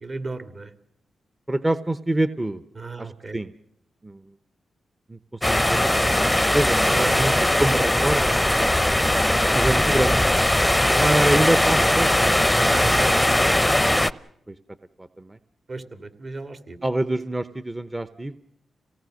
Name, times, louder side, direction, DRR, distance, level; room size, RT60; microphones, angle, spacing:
voice 1, 0.0-0.7 2.8-3.4 6.9-7.3 12.5-13.1 15.7-16.8, right 3 dB, 45° right, 9 dB, 2.3 m, -33 dB
voice 2, 1.5-2.6 3.0-3.5 4.0-4.3 5.1-6.9 7.3-8.7 9.5-10.2 10.8-12.6 14.5-14.6 15.0-15.4 16.8-18.3, right 1 dB, 20° right, 13 dB, 0.9 m, -26 dB
sound 1, 5.4-14.1, left 1 dB, 10° left, 0.7 m, -20 dB
27.0 x 18.0 x 6.5 m, 0.77 s
cardioid pair, 55°, 0 cm